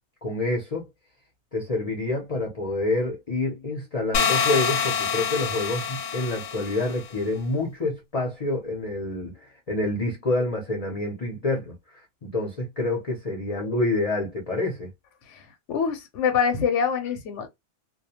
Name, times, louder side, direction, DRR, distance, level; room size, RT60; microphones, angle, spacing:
voice 1, 0.2-0.9 1.5-11.7 12.2-14.9, left 2 dB, 40° left, 0.5 m, -27 dB
sound 1, 4.1-7.0, left 7 dB, 85° left, 1.0 m, -26 dB
voice 2, 15.7-17.5, left 6 dB, 70° left, 0.8 m, -25 dB
2.3 x 2.1 x 2.7 m
omnidirectional pair, 1.4 m